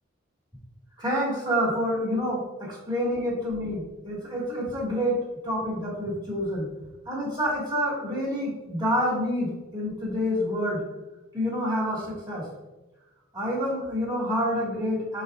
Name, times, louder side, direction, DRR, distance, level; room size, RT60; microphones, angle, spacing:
voice 1, 1.0-5.2 5.4-6.7 7.1-10.8 11.3-12.5 13.3-15.2, equal, 20° right, -5 dB, 2.3 m, -28 dB
11.0 x 4.1 x 2.7 m, 1.1 s
head